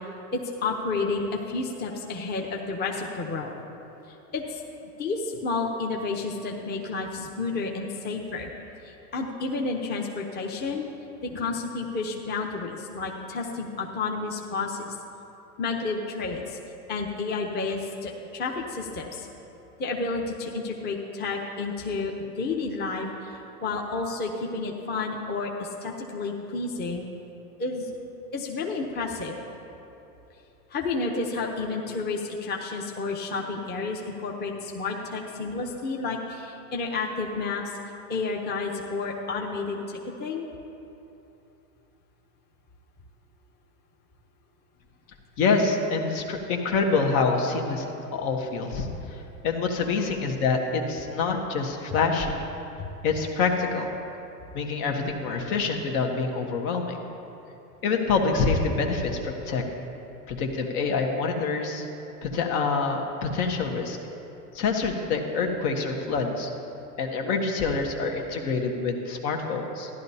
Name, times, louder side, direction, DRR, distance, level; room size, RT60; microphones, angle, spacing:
voice 1, 0.3-3.5 4.3-4.6 5.0-8.5 8.8-10.9 11.2-15.0 15.6-16.6 16.9-19.3 19.8-27.0 27.6-27.9 28.3-29.4 30.7-37.7 38.1-40.5 52.8-52.9, left 3 dB, 20° left, 0 dB, 0.8 m, -31 dB
voice 2, 45.4-52.3 53.0-53.9 54.5-57.0 57.8-59.6 60.3-61.9 62.2-64.0 64.5-66.5 67.0-69.9, left 4 dB, 60° left, 2 dB, 1.4 m, -26 dB
14.0 x 11.0 x 2.8 m, 2.9 s
hypercardioid pair, 110°, 48 cm